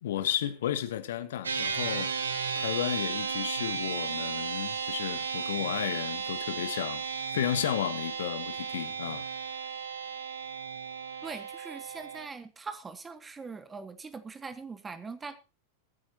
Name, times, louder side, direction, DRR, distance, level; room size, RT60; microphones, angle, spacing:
voice 1, 0.0-7.0 7.3-9.2, left 11 dB, 60° left, 1.4 m, -33 dB
sound 1, 1.4-12.3, right 6 dB, 75° right, 1.5 m, -34 dB
voice 2, 11.2-15.4, right 4 dB, 15° right, 1.4 m, -42 dB
22.0 x 9.4 x 2.9 m
figure-of-eight pair, 90°, 0 cm